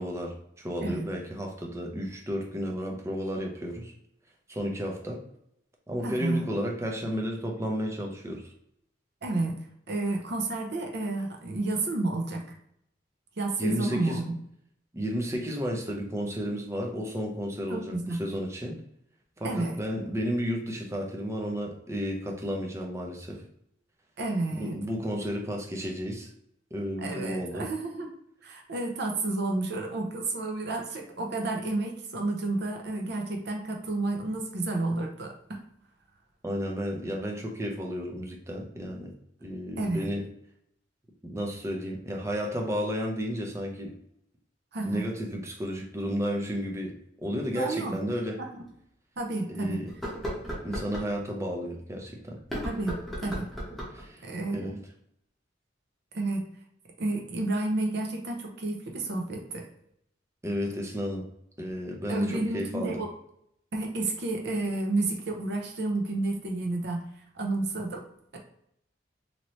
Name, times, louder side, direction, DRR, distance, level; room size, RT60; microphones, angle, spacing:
voice 1, 0.0-3.9 4.5-5.2 5.9-8.5 13.6-14.2 14.9-17.9 18.2-18.8 19.4-23.5 24.5-26.3 26.7-27.7 36.4-39.1 39.4-40.3 41.2-43.9 44.8-46.9 47.2-48.4 49.5-49.9 50.6-52.4 53.9-54.2 54.5-54.8 60.4-61.2 61.6-63.0, equal, 15° right, 1 dB, 0.5 m, -32 dB
voice 2, 6.0-6.4 9.2-9.6 9.9-12.4 13.4-14.3 17.7-18.2 19.4-19.8 24.2-24.8 27.0-28.1 28.4-35.6 39.8-40.1 44.7-45.1 47.5-48.0 48.4-48.7 49.2-49.8 52.6-53.5 54.2-54.7 56.1-56.4 57.0-59.7 62.1-63.1 63.7-67.0 67.3-68.0, right 2 dB, 60° right, 2 dB, 0.7 m, -30 dB
sound 1, 47.9-48.0 48.6-48.7 49.9-51.1 52.4-54.1, equal, ahead, 0.9 m, -35 dB
2.9 x 2.7 x 3.0 m, 0.75 s
head